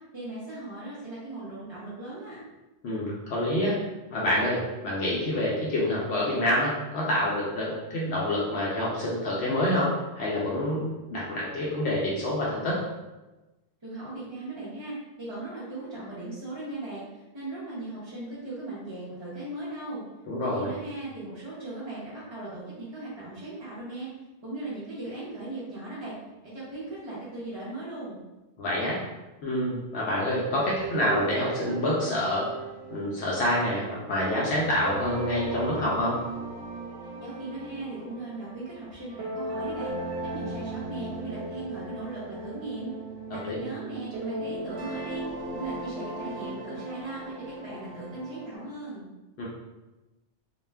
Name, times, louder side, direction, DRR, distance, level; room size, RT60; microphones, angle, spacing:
voice 1, 0.1-2.4 13.8-20.0 20.4-24.1 24.4-26.1 26.4-28.2 37.2-39.9 40.2-42.9 43.3-49.1, right 2 dB, 35° right, -10 dB, 0.5 m, -38 dB
voice 2, 2.8-3.8 4.1-12.8 20.3-20.7 28.6-29.0 29.4-32.5 32.9-36.2 43.4-43.6 49.4-49.5, left 1 dB, 70° left, -6 dB, 0.8 m, -27 dB
sound 1, 30.8-48.6, right 2 dB, 65° right, 0.9 m, -37 dB
2.4 x 2.2 x 3.2 m, 1.1 s
omnidirectional pair, 1.2 m